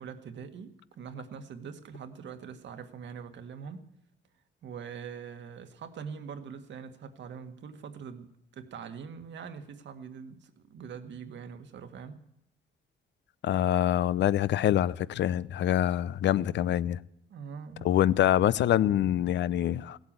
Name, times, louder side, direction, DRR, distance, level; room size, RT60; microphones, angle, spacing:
voice 1, 0.0-3.9 4.6-12.2 17.3-17.9, right 6 dB, 65° right, 1.8 m, -43 dB
voice 2, 13.4-17.0 17.8-20.0, left 11 dB, 65° left, 0.6 m, -25 dB
16.5 x 8.2 x 8.8 m
cardioid pair, 90°, 20 cm